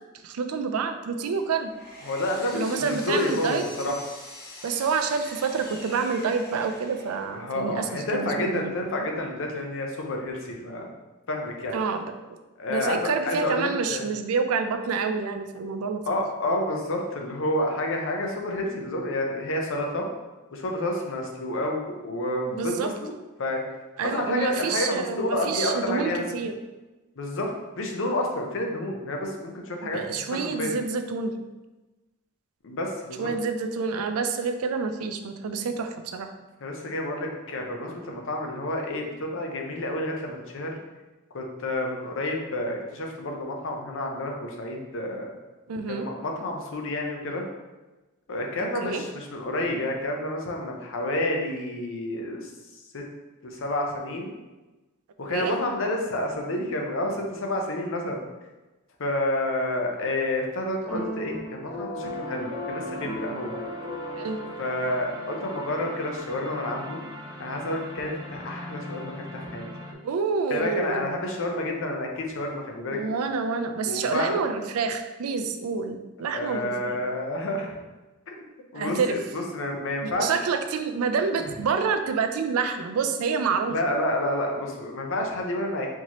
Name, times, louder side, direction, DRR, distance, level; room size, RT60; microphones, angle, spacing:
voice 1, 0.2-1.7 2.5-3.6 4.6-8.8 11.7-12.2 12.7-16.0 22.5-22.9 24.0-26.5 29.8-31.4 33.2-36.3 45.7-46.1 48.8-49.0 55.3-55.5 64.2-64.4 70.0-71.1 72.9-77.0 78.7-79.2 80.0-83.8, right 5 dB, 80° right, 7 dB, 0.4 m, -28 dB
Power tool, 1.4-7.4, left 1 dB, 45° left, 1.0 m, -44 dB
voice 2, 2.1-4.0 7.3-10.9 11.3-11.7 12.6-14.0 16.1-20.1 20.5-23.1 23.4-23.6 24.0-26.2 27.2-27.5 27.8-30.7 32.6-33.3 36.6-40.8 41.3-45.3 45.9-47.5 48.3-52.5 52.9-53.1 53.4-54.3 55.2-58.2 59.0-63.6 64.6-67.1 67.4-69.7 70.5-73.0 73.8-74.4 76.3-77.8 78.3-78.4 78.7-80.3 83.7-85.9, left 1 dB, 65° left, 1 dB, 0.7 m, -29 dB
sound 1, 60.9-65.3, equal, ahead, 1.4 m, -36 dB
sound 2, 62.0-69.9, left 1 dB, 20° right, 0.4 m, -40 dB
4.5 x 2.9 x 2.9 m, 1.1 s
head